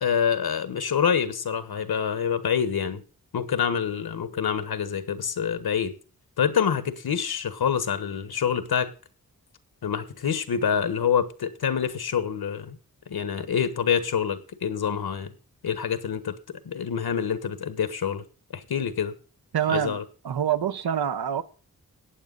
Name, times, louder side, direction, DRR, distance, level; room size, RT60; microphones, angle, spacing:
voice 1, 0.0-3.0 3.3-5.9 6.4-8.9 9.8-12.8 13.1-15.3 15.6-18.2 18.5-19.1 19.7-20.0, left 7 dB, 85° left, 1.4 m, -26 dB
voice 2, 19.5-20.0 20.2-21.4, right 9 dB, 85° right, 1.0 m, -25 dB
15.0 x 9.0 x 4.0 m
wide cardioid pair, 85°, 36 cm